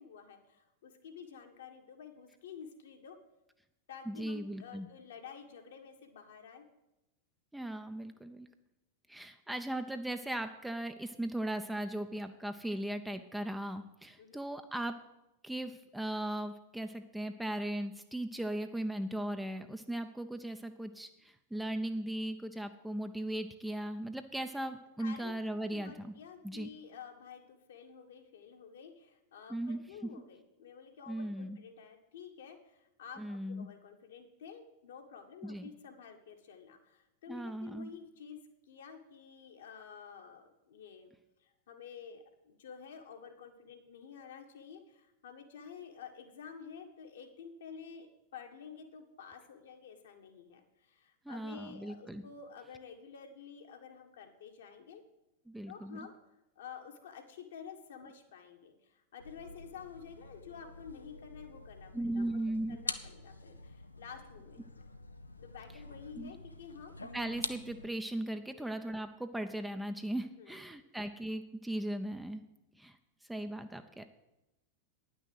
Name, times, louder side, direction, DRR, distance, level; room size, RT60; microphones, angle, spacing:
voice 1, 0.0-3.2 3.9-6.7 14.2-14.4 25.0-38.4 38.7-41.1 41.4-55.0 55.7-56.1 56.5-62.4 62.7-64.6 65.4-66.9 68.5-68.6 70.4-70.6, left 7 dB, 60° left, 4 dB, 1.5 m, -50 dB
voice 2, 4.1-4.9 7.5-8.5 9.1-15.0 15.4-26.1 26.4-26.7 29.5-29.8 31.1-31.6 33.2-33.7 35.4-35.7 37.3-37.9 51.3-52.2 55.5-56.0 61.9-62.8 66.2-66.3 67.1-72.4 72.8-73.0 73.3-74.0, right 1 dB, 5° right, 7 dB, 0.6 m, -38 dB
sound 1, 59.2-67.9, left 3 dB, 80° left, 0.6 m, -46 dB
10.0 x 6.2 x 8.0 m, 0.91 s
figure-of-eight pair, 90°, 0 cm